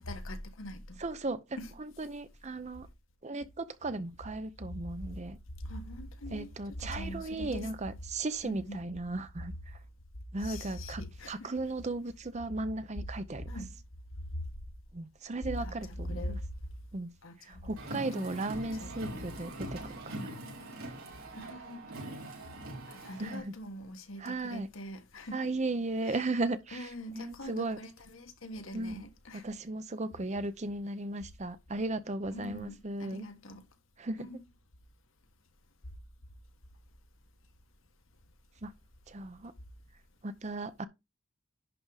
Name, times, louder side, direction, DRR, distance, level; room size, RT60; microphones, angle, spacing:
voice 1, 0.0-1.0 1.6-1.7 5.6-6.5 6.8-7.7 8.4-8.8 10.4-11.5 13.5-13.7 15.6-16.4 17.2-18.2 18.8-19.2 21.3-21.9 22.9-25.4 26.1-26.2 26.7-29.5 32.3-33.6 34.2-34.4, equal, 65° left, 1.5 m, -42 dB
voice 2, 1.0-2.9 3.2-5.4 6.3-9.8 10.3-13.6 14.9-16.4 16.9-17.1 17.4-20.3 23.2-23.5 24.2-24.7 25.3-27.8 28.7-29.0 29.3-33.3 34.0-34.3 38.6-38.7 39.1-39.5 40.2-40.9, right 2 dB, 35° right, 0.7 m, -36 dB
Car, 17.8-23.4, right 1 dB, 85° right, 4.3 m, -43 dB
11.0 x 3.7 x 4.8 m
head